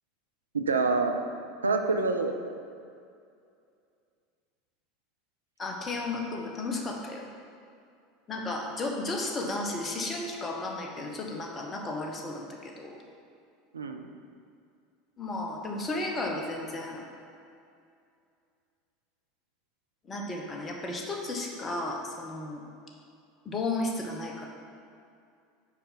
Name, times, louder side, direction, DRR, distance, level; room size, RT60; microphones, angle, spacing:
voice 1, 0.5-1.2 1.6-2.6 13.7-14.1, right 3 dB, 80° right, 6 dB, 0.5 m, -27 dB
voice 2, 5.6-7.3 8.3-13.0 15.2-17.0 20.0-22.6 23.4-24.5, left 2 dB, 25° left, 0 dB, 1.2 m, -34 dB
6.0 x 4.8 x 5.6 m, 2.4 s
figure-of-eight pair, 75°, 0 cm